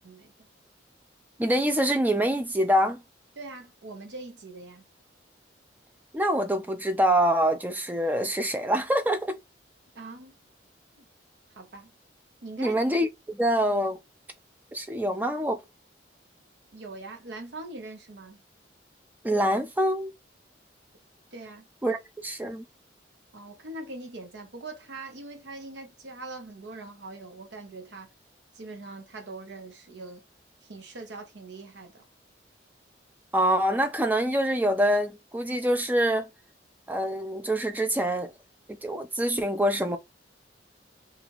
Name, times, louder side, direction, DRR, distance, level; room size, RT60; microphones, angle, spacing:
voice 1, 0.0-0.5 3.4-4.8 9.9-10.3 11.0-11.1 11.5-11.9 12.4-12.8 16.7-18.4 21.3-21.7 23.3-28.1 28.5-30.2 30.6-32.0, right 2 dB, 70° right, 0.8 m, -42 dB
voice 2, 1.4-3.0 6.1-9.4 12.6-14.0 14.7-15.6 19.2-20.1 21.8-22.6 33.3-36.3 36.9-38.3 38.7-40.0, equal, 10° right, 0.3 m, -25 dB
2.7 x 2.4 x 3.0 m
head